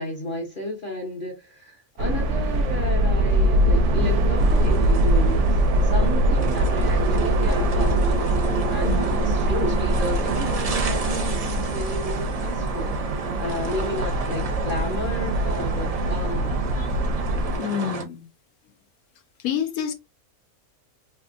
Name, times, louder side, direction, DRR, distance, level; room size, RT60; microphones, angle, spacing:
voice 1, 0.0-8.0 8.7-12.9 13.4-16.5, left 1 dB, 45° left, 0.9 m, -32 dB
sound 1, 2.0-17.6, right 1 dB, 65° right, 0.8 m, -22 dB
sound 2, 4.4-18.0, right 4 dB, 45° right, 0.4 m, -32 dB
voice 2, 8.8-9.2 17.6-18.3 19.4-19.9, left 9 dB, 85° left, 1.2 m, -28 dB
3.4 x 2.7 x 2.4 m
omnidirectional pair, 1.5 m